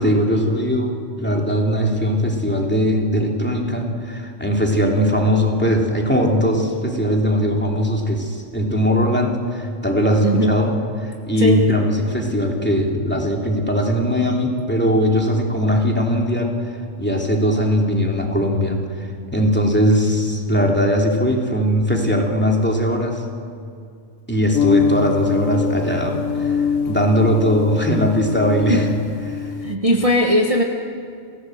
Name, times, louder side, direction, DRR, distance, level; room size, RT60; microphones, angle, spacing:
voice 1, 0.0-10.8 11.0-23.2 24.3-28.9 29.3-29.5, equal, 10° left, 0 dB, 2.9 m, -20 dB
voice 2, 10.2-10.6 11.4-11.7 28.7-28.8 29.6-30.6, equal, 30° right, 2 dB, 1.3 m, -18 dB
sound 1, 24.5-29.8, left 6 dB, 85° left, 1.1 m, -23 dB
28.5 x 16.0 x 7.9 m, 2.3 s
omnidirectional pair, 1.3 m